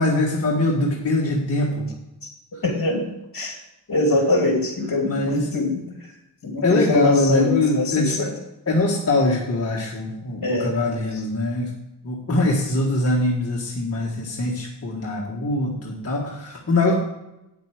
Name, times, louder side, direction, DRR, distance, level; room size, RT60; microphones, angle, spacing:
voice 1, 0.0-1.9 2.5-2.6 5.1-5.5 6.6-8.3 8.7-11.7 12.0-16.9, left 2 dB, 35° left, -3 dB, 1.8 m, -22 dB
voice 2, 2.6-3.0 3.3-3.6 3.9-5.8 6.4-8.3 10.4-10.7, left 2 dB, 50° left, 3 dB, 2.6 m, -23 dB
9.0 x 8.1 x 5.0 m, 0.90 s
wide cardioid pair, 110°, 43 cm